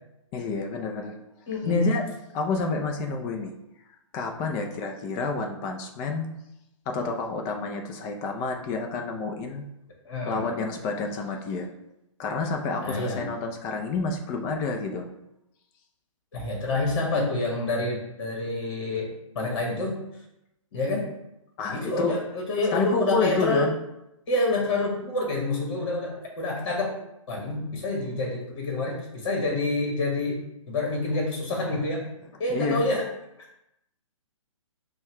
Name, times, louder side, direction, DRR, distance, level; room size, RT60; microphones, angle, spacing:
voice 1, 0.3-1.1 1.7-2.1 2.3-3.5 4.1-6.3 6.9-9.6 10.3-11.7 12.2-15.1 21.6-22.1 22.7-23.7 32.5-32.8, left 4 dB, 20° left, 3 dB, 0.4 m, -29 dB
voice 2, 1.5-1.9 10.0-10.5 12.8-13.3 16.3-19.1 19.3-20.0 20.7-21.1 21.7-23.7 24.3-27.0 27.3-30.4 30.7-32.0 32.4-33.0, left 2 dB, 45° left, -1 dB, 1.2 m, -27 dB
5.4 x 2.2 x 3.1 m, 0.86 s
figure-of-eight pair, 135°, 17 cm